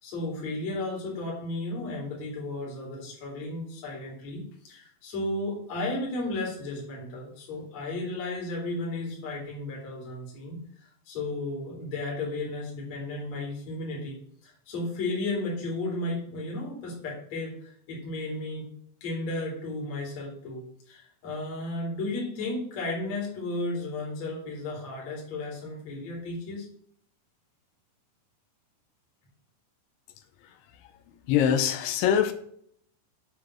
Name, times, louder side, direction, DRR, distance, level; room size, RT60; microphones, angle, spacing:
voice 1, 0.0-14.2 14.4-18.7 19.0-26.7, left 2 dB, 40° left, -3 dB, 3.7 m, -34 dB
voice 2, 31.3-32.3, left 9 dB, 85° left, 9 dB, 3.0 m, -23 dB
8.2 x 4.9 x 7.5 m, 0.66 s
omnidirectional pair, 5.6 m